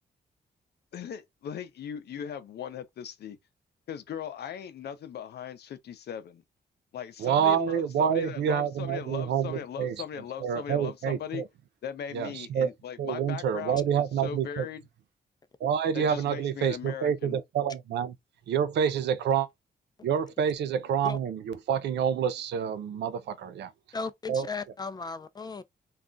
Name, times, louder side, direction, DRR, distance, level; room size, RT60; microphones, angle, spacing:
voice 1, 0.9-3.4 3.9-6.4 6.9-11.4 11.8-14.8 15.9-17.4, left 9 dB, 75° left, 0.5 m, -39 dB
voice 2, 7.2-10.0 10.4-11.4 12.1-12.7 13.0-14.7 15.6-18.1 18.5-19.5 20.0-23.7 24.3-24.4, right 8 dB, 85° right, 0.4 m, -27 dB
voice 3, 23.9-25.6, left 4 dB, 25° left, 0.4 m, -36 dB
2.3 x 2.1 x 3.7 m
cardioid pair, 80°, 17 cm